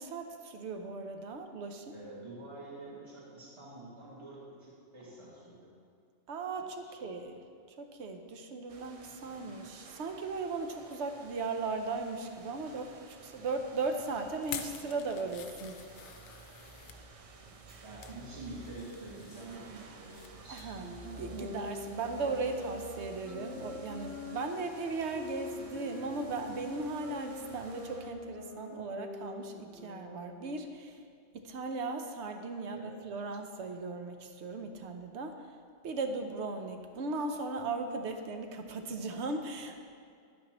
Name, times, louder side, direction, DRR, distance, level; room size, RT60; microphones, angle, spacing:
voice 1, 0.0-1.9 6.3-7.4 7.8-15.9 20.5-31.0 31.3-35.5 35.8-39.9, right 3 dB, 70° right, 5 dB, 1.0 m, -37 dB
voice 2, 1.9-5.7 6.6-7.2 17.4-20.8 32.7-32.9, right 2 dB, 25° right, -8 dB, 2.0 m, -47 dB
sound 1, 8.7-28.1, right 2 dB, 45° right, 0.4 m, -53 dB
sound 2, 14.4-17.0 17.6-18.2 18.6-20.3 20.6-20.8 21.2-21.3, left 8 dB, 75° left, 0.8 m, -47 dB
sound 3, 20.8-30.8, left 3 dB, 15° left, 0.5 m, -45 dB
10.5 x 8.8 x 2.9 m, 2.3 s
omnidirectional pair, 1.2 m